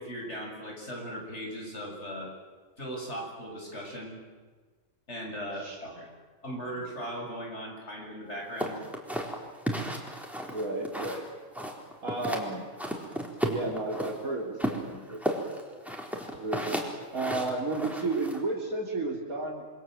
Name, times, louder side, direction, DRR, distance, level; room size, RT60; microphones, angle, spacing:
voice 1, 0.0-2.3 2.8-4.2 5.1-6.0 6.4-8.8, equal, 50° left, -1 dB, 7.6 m, -38 dB
voice 2, 5.6-6.1 10.5-11.2 12.0-12.7 13.4-15.2 16.4-16.8 17.1-19.6, right 2 dB, 85° right, -1 dB, 3.8 m, -32 dB
sound 1, 8.6-11.3 11.6-12.5 12.8-14.2 14.6-18.4, equal, ahead, 4.0 m, -33 dB
27.5 x 25.0 x 7.9 m, 1.4 s
omnidirectional pair, 1.5 m